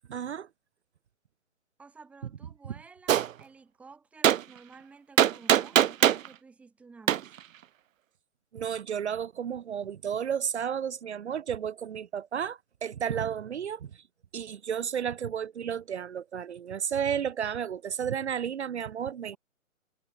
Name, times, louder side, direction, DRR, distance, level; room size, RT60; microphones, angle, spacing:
voice 1, 0.1-0.5 8.5-13.9 14.3-19.4, right 8 dB, 55° right, 1.0 m, -32 dB
voice 2, 1.8-7.3, right 4 dB, 5° right, 1.1 m, -52 dB
Gunshot gunfire, 3.1-3.3 4.2-4.4 5.2-6.3 7.1-7.2, right 11 dB, 75° right, 0.5 m, -21 dB
figure-of-eight pair, 145°, 40 cm